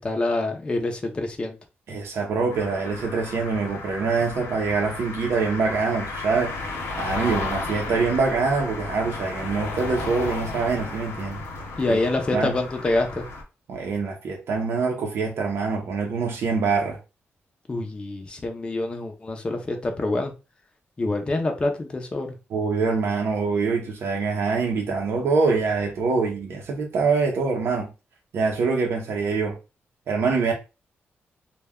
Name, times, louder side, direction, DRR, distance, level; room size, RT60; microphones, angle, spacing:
voice 1, 0.0-1.6 11.8-13.3 17.7-20.3 21.0-22.3, left 2 dB, 25° left, 0.5 m, -26 dB
voice 2, 1.9-6.6 7.0-11.4 11.9-12.0 12.3-12.5 13.7-17.0 22.5-27.9 28.3-29.6 30.1-30.5, right 4 dB, 70° right, 0.6 m, -24 dB
sound 1, 2.5-13.4, left 3 dB, 85° left, 0.8 m, -34 dB
2.2 x 2.1 x 3.4 m
wide cardioid pair, 135°, 4 cm